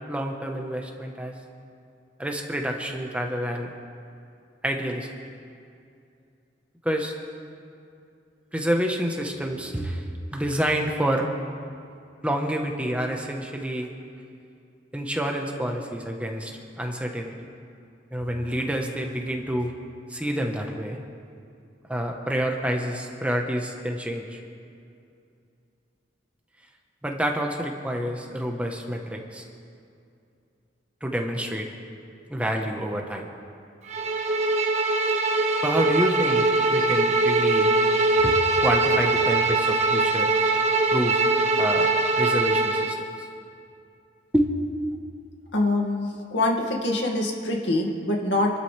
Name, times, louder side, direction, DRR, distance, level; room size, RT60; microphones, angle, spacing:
voice 1, 0.1-1.3 2.2-3.7 4.6-5.1 6.8-7.1 8.5-10.0 10.3-11.3 12.2-13.9 14.9-16.5 16.8-17.3 18.1-19.7 20.1-21.0 21.9-24.4 27.0-29.4 31.0-31.7 32.3-33.3 35.6-37.7 38.2-40.3 40.9-41.2 41.6-43.3 44.3-44.5, equal, 5° right, 1 dB, 1.2 m, -28 dB
Bowed string instrument, 33.9-43.0, right 3 dB, 40° right, 1.2 m, -22 dB
voice 2, 45.5-48.5, left 2 dB, 85° left, 0 dB, 2.3 m, -24 dB
27.0 x 12.5 x 3.4 m, 2.5 s
head